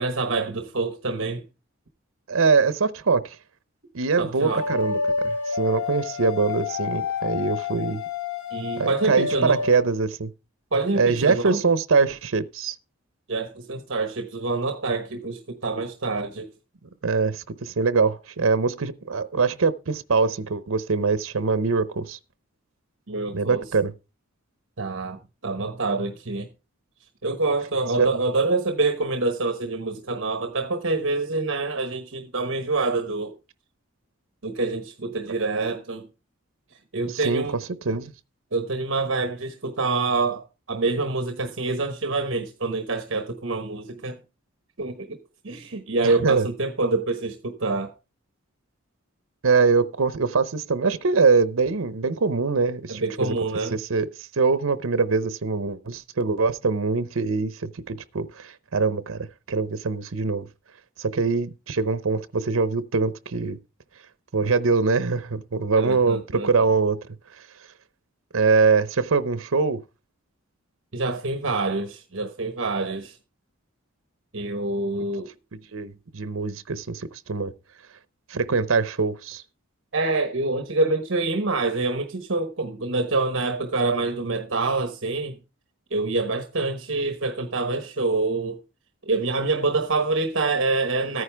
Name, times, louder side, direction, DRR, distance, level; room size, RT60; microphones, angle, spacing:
voice 1, 0.0-1.4 4.2-4.6 8.5-9.6 10.7-11.6 13.3-16.5 23.1-23.7 24.8-26.5 27.2-33.3 34.4-36.1 36.7-37.5 38.5-44.2 44.8-45.2 45.4-47.9 52.9-53.8 65.8-66.5 70.9-73.2 74.3-75.3 79.9-85.4 85.9-88.6 89.0-91.2, right 3 dB, 60° right, 1.1 m, -26 dB
voice 2, 2.3-3.4 3.9-8.0 8.8-10.3 10.9-12.8 17.0-22.2 23.3-23.9 28.0-28.1 37.2-37.4 37.9-38.1 46.0-46.5 49.4-53.3 53.7-54.1 54.4-60.5 61.0-63.6 64.3-67.0 68.3-69.8 75.7-77.5 78.3-79.4, right 4 dB, 80° right, 0.8 m, -23 dB
sound 1, 4.5-9.8, left 5 dB, 85° left, 1.2 m, -29 dB
14.0 x 9.6 x 3.4 m
head